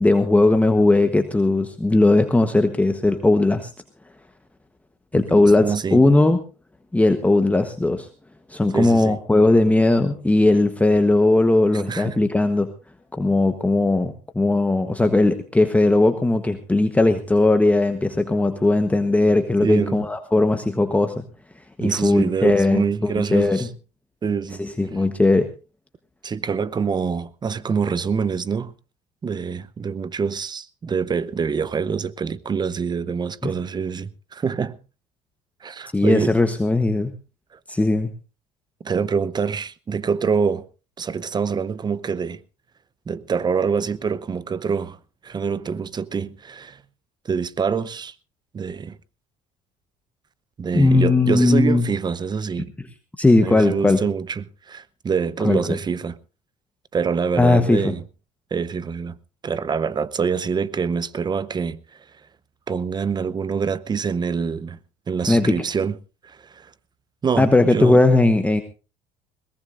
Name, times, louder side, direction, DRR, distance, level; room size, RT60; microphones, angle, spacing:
voice 1, 0.0-3.7 5.1-6.4 6.9-8.1 8.5-12.7 13.1-21.2 21.8-23.7 24.6-25.5 35.9-37.1 37.7-38.1 50.7-51.8 53.2-54.0 55.4-55.6 57.4-57.9 65.3-65.6 67.4-68.6, left 2 dB, 10° left, 1.1 m, -18 dB
voice 2, 5.1-6.0 8.7-9.2 11.9-12.2 19.6-20.1 21.8-23.7 24.2-24.6 26.2-28.7 29.2-34.8 35.6-36.4 37.5-37.6 38.8-40.7 41.0-42.4 43.1-46.8 47.2-48.1 48.5-49.0 50.6-52.7 53.4-56.2 56.9-58.0 58.5-59.2 59.4-62.0 62.7-64.8 65.1-66.0 66.2-66.7 67.2-68.0, right 6 dB, 25° right, 0.8 m, -25 dB
21.0 x 19.0 x 2.6 m
supercardioid pair, 90°, 16 cm